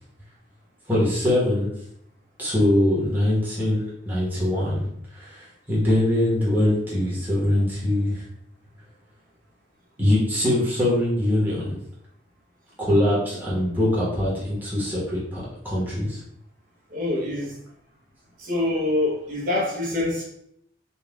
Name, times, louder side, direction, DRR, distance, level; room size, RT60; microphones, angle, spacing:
voice 1, 0.9-1.7 2.4-4.9 5.1-8.2 10.0-11.8 12.8-16.2, left 1 dB, 10° right, -7 dB, 1.1 m, -23 dB
voice 2, 16.9-17.5 18.4-20.2, left 2 dB, 45° right, -4 dB, 0.9 m, -25 dB
4.0 x 2.4 x 3.6 m, 0.74 s
head